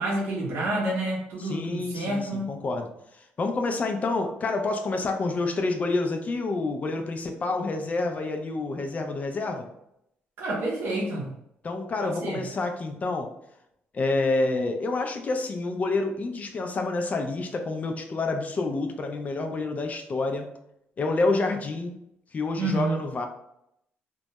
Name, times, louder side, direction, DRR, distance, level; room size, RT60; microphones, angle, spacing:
voice 1, 0.0-2.5 10.4-11.3 12.0-12.4 22.6-23.0, right 2 dB, 70° right, -4 dB, 0.6 m, -29 dB
voice 2, 1.4-2.9 3.4-9.7 11.6-13.3 13.9-20.5 21.0-22.0 22.3-23.3, left 3 dB, 35° left, 5 dB, 0.4 m, -28 dB
2.2 x 2.0 x 2.7 m, 0.77 s
cardioid pair, 110°, 4 cm